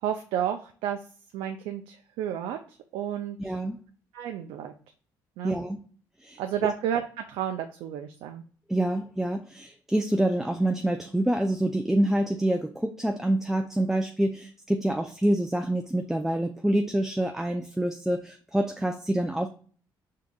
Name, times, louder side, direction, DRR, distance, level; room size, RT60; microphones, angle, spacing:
voice 1, 0.0-1.0 1.3-3.6 4.1-4.7 5.4-5.6 6.4-8.4, right 10 dB, 85° right, 5 dB, 0.4 m, -31 dB
voice 2, 3.4-3.8 5.4-5.8 6.2-6.4 8.7-19.5, right 1 dB, 5° right, 4 dB, 0.4 m, -26 dB
5.1 x 3.7 x 2.3 m, 0.43 s
supercardioid pair, 75°, 9 cm